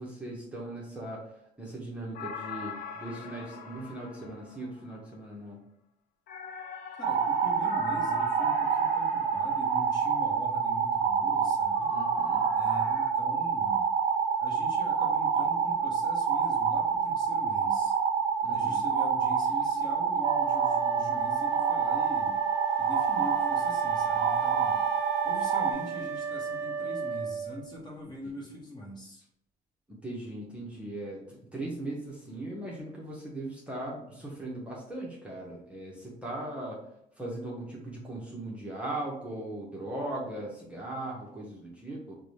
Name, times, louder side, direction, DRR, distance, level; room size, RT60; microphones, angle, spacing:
voice 1, 0.0-5.6 11.9-12.5 18.4-18.8 28.2-28.4 29.9-36.8 37.2-42.1, right 1 dB, 5° right, -5 dB, 0.9 m, -39 dB
sound 1, 2.2-5.0 6.3-10.1 11.8-13.1, left 5 dB, 65° left, 0.6 m, -41 dB
voice 2, 7.0-11.9 12.5-13.9 14.4-17.9 18.5-22.3 22.8-24.8 25.2-29.2, left 1 dB, 25° left, -2 dB, 1.1 m, -42 dB
sound 2, 7.0-25.7, right 6 dB, 80° right, 0.5 m, -27 dB
Wind instrument woodwind instrument, 20.2-27.8, right 7 dB, 45° right, 0.8 m, -36 dB
3.8 x 2.2 x 3.2 m, 0.74 s
cardioid pair, 110°, 17 cm